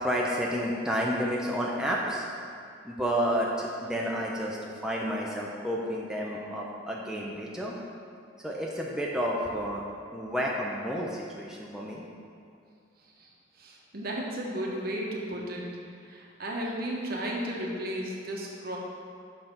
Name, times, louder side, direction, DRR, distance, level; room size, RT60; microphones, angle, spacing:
voice 1, 0.0-2.2 2.8-4.6 4.8-7.8 8.4-9.8 10.1-12.0, equal, 5° right, -3 dB, 0.6 m, -30 dB
voice 2, 13.6-15.7 16.1-18.8, right 1 dB, 55° right, -2 dB, 1.1 m, -34 dB
6.0 x 5.9 x 5.2 m, 2.3 s
head